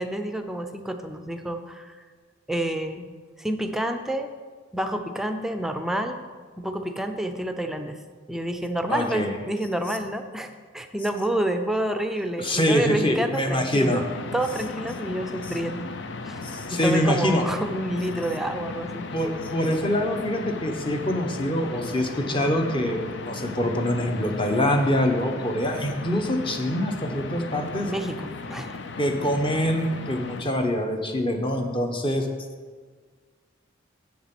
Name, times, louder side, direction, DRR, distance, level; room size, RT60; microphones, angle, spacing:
voice 1, 0.0-1.9 2.5-3.1 3.4-4.3 4.7-6.2 6.6-8.0 8.3-14.1 14.3-15.9 16.2-16.4 16.7-19.1 27.8-28.8, right 1 dB, ahead, 7 dB, 0.5 m, -29 dB
voice 2, 8.9-9.4 12.4-14.0 16.4-17.4 19.1-27.9 29.0-32.3, left 1 dB, 25° left, 4 dB, 1.0 m, -25 dB
sound 1, 13.8-30.4, left 3 dB, 60° left, 0.6 m, -36 dB
7.9 x 7.1 x 6.0 m, 1.5 s
head